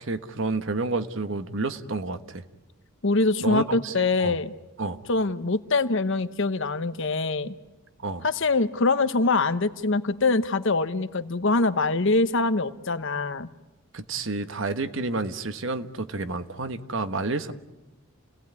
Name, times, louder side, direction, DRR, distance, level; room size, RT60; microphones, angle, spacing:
voice 1, 0.0-2.4 3.4-3.9 4.2-4.3 4.8-5.0 8.0-8.2 13.9-17.5, right 3 dB, 60° right, 10 dB, 1.3 m, -30 dB
voice 2, 3.0-4.5 5.1-7.5 8.2-13.5, left 3 dB, 60° left, 12 dB, 1.0 m, -24 dB
29.0 x 18.0 x 9.6 m, 1.1 s
head